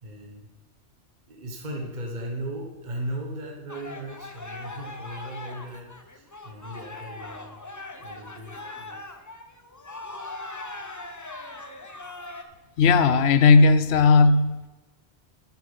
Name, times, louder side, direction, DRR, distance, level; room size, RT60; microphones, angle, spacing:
voice 1, 0.0-0.5 1.3-7.6 8.0-9.2, right 1 dB, 40° right, 0 dB, 1.4 m, -37 dB
sound 1, 3.7-12.4, left 2 dB, 20° left, 0.6 m, -40 dB
voice 2, 12.8-14.7, left 4 dB, 70° left, 13 dB, 0.8 m, -17 dB
9.2 x 7.4 x 5.4 m, 1.2 s
omnidirectional pair, 1.2 m